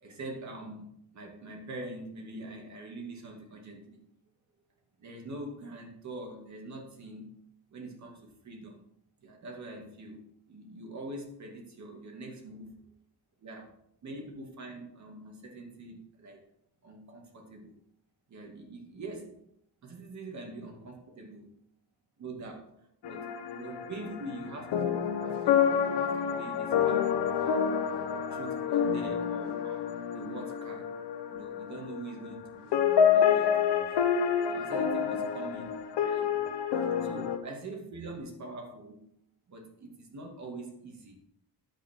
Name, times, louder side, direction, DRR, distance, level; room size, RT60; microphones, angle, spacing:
voice 1, 0.0-4.0 5.0-7.3 7.7-8.8 9.2-12.7 13.4-13.7 14.0-16.4 16.8-17.8 18.3-19.4 19.8-21.5 22.2-27.6 28.3-31.0 31.3-33.9 34.5-35.7 36.0-36.5 37.0-39.1 39.5-41.2, right 2 dB, 45° right, 2 dB, 2.2 m, -44 dB
sound 1, 23.0-32.5 32.7-37.4, left 8 dB, 80° left, 1.2 m, -28 dB
10.0 x 8.0 x 4.5 m, 0.75 s
wide cardioid pair, 180°, 40 cm